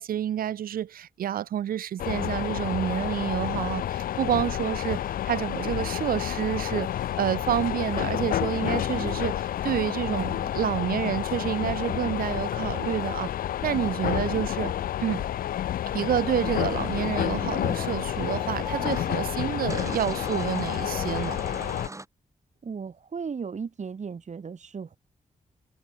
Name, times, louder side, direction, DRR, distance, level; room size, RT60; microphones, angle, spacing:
voice 1, 0.0-6.9 7.2-10.3 10.5-13.3 13.6-14.7 15.0-15.2 15.9-21.4, right 10 dB, 85° right, 2.1 m, -29 dB
sound 1, 2.0-21.9, left 11 dB, 90° left, 1.6 m, -29 dB
voice 2, 10.1-10.5 14.0-14.3 22.6-25.0, right 5 dB, 55° right, 2.8 m, -36 dB
sound 2, 16.3-22.0, right 2 dB, 20° right, 4.7 m, -41 dB
cardioid pair, 55°, 14 cm